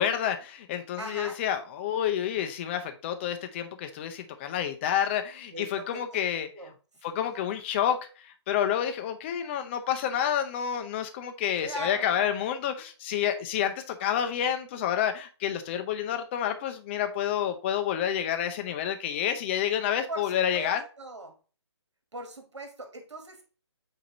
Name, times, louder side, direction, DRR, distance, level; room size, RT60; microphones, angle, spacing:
voice 1, 0.0-6.5 7.0-20.8, left 9 dB, 25° left, 7 dB, 0.7 m, -29 dB
voice 2, 1.0-1.4 5.5-6.2 6.5-6.7 7.0-7.4 11.6-12.3 20.1-21.4 22.1-23.5, right 1 dB, 75° right, 5 dB, 2.1 m, -40 dB
8.5 x 2.9 x 3.9 m, 0.35 s
figure-of-eight pair, 145°, 15 cm